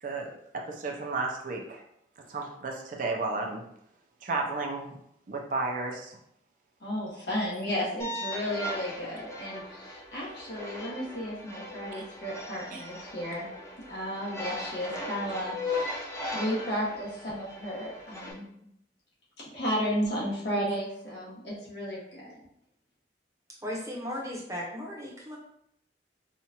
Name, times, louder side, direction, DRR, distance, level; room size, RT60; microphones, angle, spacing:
voice 1, 0.0-1.8 2.3-3.6 4.2-5.0 5.3-6.2 12.7-12.8, right 3 dB, 50° right, 0 dB, 0.6 m, -33 dB
voice 2, 6.8-13.5 13.9-18.5 19.4-22.4, equal, 65° left, -7 dB, 1.4 m, -33 dB
sound 1, 8.0-18.3, left 1 dB, 15° left, 0.7 m, -38 dB
voice 3, 23.6-25.4, left 1 dB, 20° right, -3 dB, 0.8 m, -36 dB
4.3 x 2.4 x 2.9 m, 0.74 s
head